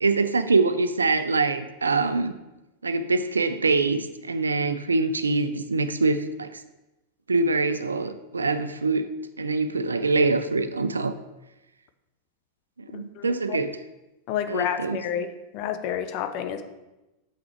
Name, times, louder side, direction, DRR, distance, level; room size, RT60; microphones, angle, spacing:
voice 1, 0.0-2.4 2.8-6.6 7.3-9.1 9.4-11.1 12.9-13.7 14.5-15.0, right 3 dB, 75° right, 11 dB, 0.4 m, -24 dB
voice 2, 12.9-13.6 14.3-16.6, left 9 dB, 45° left, 9 dB, 0.6 m, -30 dB
6.7 x 5.9 x 4.4 m, 0.99 s
figure-of-eight pair, 90°, 0 cm